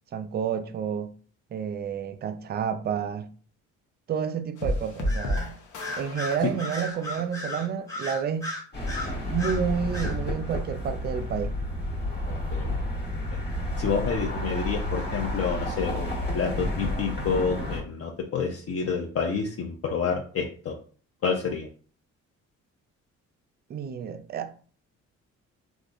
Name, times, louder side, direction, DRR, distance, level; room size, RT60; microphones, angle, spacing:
voice 1, 0.1-1.1 1.5-3.3 4.1-5.6 6.0-8.6 9.2-11.6 23.7-24.5, right 7 dB, 35° right, 0.4 m, -30 dB
sound 1, 4.6-7.8, left 1 dB, 80° left, 0.8 m, -32 dB
Bird vocalization bird call bird song, 5.1-5.5 5.8-9.6 9.9-10.2, left 2 dB, 10° left, 1.2 m, -35 dB
sound 2, 8.7-17.8, left 1 dB, 35° left, 1.2 m, -31 dB
voice 2, 12.3-12.8 13.3-13.4 13.8-20.7 21.2-21.7, left 5 dB, 50° left, 0.6 m, -29 dB
3.4 x 2.5 x 2.5 m
cardioid pair, 90°, 30 cm